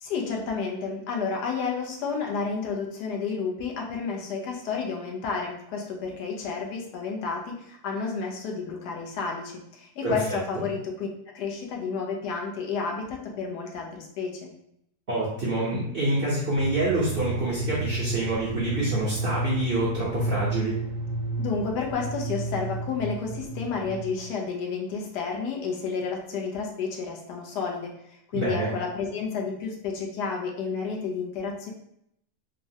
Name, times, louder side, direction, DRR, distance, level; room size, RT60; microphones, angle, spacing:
voice 1, 0.0-11.1 11.3-14.5 21.4-27.9 28.3-31.7, left 5 dB, 80° left, 0 dB, 1.2 m, -31 dB
voice 2, 10.0-10.6 15.1-20.8 28.3-28.7, right 1 dB, 55° right, -6 dB, 0.6 m, -27 dB
sound 1, 16.6-24.4, right 3 dB, 75° right, 1.2 m, -32 dB
3.6 x 2.0 x 2.6 m, 0.76 s
omnidirectional pair, 1.7 m